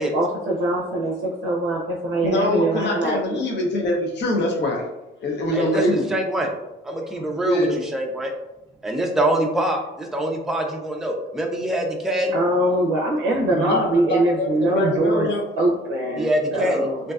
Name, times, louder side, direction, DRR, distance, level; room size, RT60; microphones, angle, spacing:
voice 1, 0.1-3.4 12.3-15.3 15.6-17.0, right 1 dB, 80° right, -2 dB, 0.5 m, -23 dB
voice 2, 2.2-4.8 5.2-6.2 7.4-7.8 13.5-15.4, left 1 dB, 60° left, 0 dB, 0.7 m, -23 dB
voice 3, 5.5-5.8 6.1-6.5 6.8-8.3 8.8-12.3 16.2-17.1, right 1 dB, ahead, 1 dB, 0.4 m, -24 dB
2.6 x 2.2 x 2.3 m, 0.96 s
cardioid pair, 90°, 20 cm